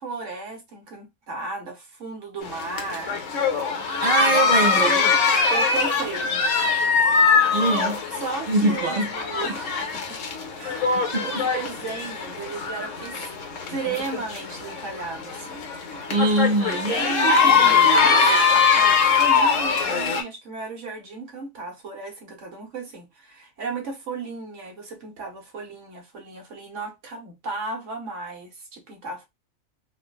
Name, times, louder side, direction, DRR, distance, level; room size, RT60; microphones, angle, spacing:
voice 1, 0.0-4.2 5.5-6.4 8.2-10.2 10.6-13.3 13.6-15.5 16.9-18.2 18.5-29.3, right 4 dB, 65° right, 1.3 m, -35 dB
sound 1, 2.4-20.2, left 5 dB, 70° left, 1.2 m, -22 dB
voice 2, 4.0-5.0 7.5-8.0 8.5-9.1 9.5-9.6 11.1-11.2 16.1-16.9, right 2 dB, 45° right, 0.7 m, -22 dB
3.7 x 2.1 x 2.3 m
omnidirectional pair, 1.4 m